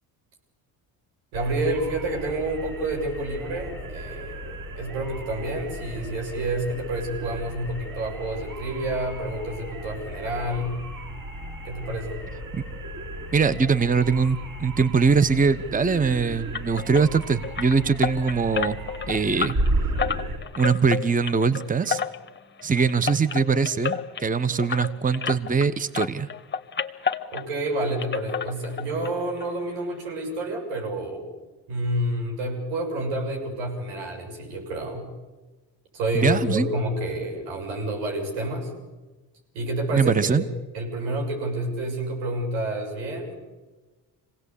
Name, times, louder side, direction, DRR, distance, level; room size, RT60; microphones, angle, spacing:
sound 1, 1.3-20.4, right 1 dB, 45° right, 7.1 m, -34 dB
voice 1, 1.3-4.5 4.8-10.8 11.6-12.2 27.3-31.3 31.7-35.0 35.9-38.7 39.5-40.5 40.7-43.3, right 1 dB, 85° right, 1 dB, 7.0 m, -29 dB
voice 2, 13.3-18.8 19.1-19.5 20.6-22.0 22.6-26.3 36.1-36.7 39.9-40.4, right 5 dB, 20° right, 14 dB, 1.0 m, -22 dB
sound 2, 16.5-25.7 25.9-27.7 28.0-29.1 29.4-29.5 29.9-30.0 30.4-30.5, left 7 dB, 25° left, 1.5 m, -31 dB
25.5 x 18.0 x 8.5 m, 1.2 s
supercardioid pair, 65°, 44 cm